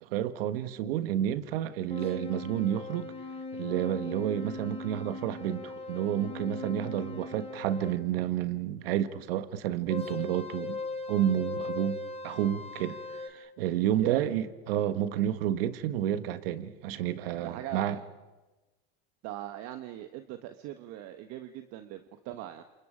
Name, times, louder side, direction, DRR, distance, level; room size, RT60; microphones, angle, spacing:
voice 1, 0.0-3.1 3.5-10.8 11.1-13.0 13.2-18.0, right 11 dB, 85° right, 1.5 m, -30 dB
sound 1, 1.9-8.0 9.9-13.3, left 3 dB, 20° left, 3.3 m, -39 dB
voice 2, 17.4-18.0 19.2-22.6, right 13 dB, 65° right, 1.4 m, -40 dB
28.0 x 28.0 x 5.1 m
supercardioid pair, 100°, 29 cm